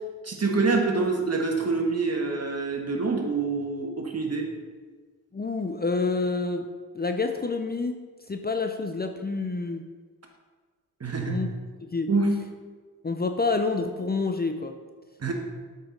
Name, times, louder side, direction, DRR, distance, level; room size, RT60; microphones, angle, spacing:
voice 1, 0.2-4.5 11.0-11.4 12.1-12.3 15.2-15.3, right 3 dB, 45° right, 2 dB, 1.4 m, -26 dB
voice 2, 5.3-6.7 6.9-8.0 8.3-9.8 11.3-11.5 11.9-12.1 13.0-14.7, left 3 dB, 25° left, 5 dB, 0.6 m, -28 dB
7.7 x 5.6 x 3.9 m, 1.5 s
cardioid pair, 50°, 36 cm